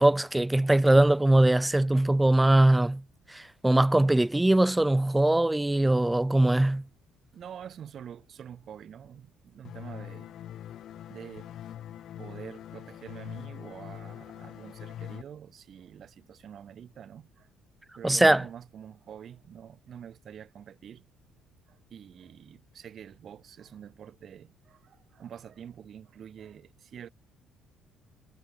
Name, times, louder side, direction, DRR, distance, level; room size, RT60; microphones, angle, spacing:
voice 1, 0.0-3.0 3.3-6.8 18.0-18.4, right 1 dB, 10° right, 0.3 m, -21 dB
voice 2, 7.3-10.3 11.1-11.5 12.2-17.5 17.9-21.0 21.7-27.1, right 9 dB, 55° right, 4.8 m, -46 dB
sound 1, 9.7-15.2, left 11 dB, 65° left, 1.9 m, -43 dB
cardioid pair, 95°, 0 cm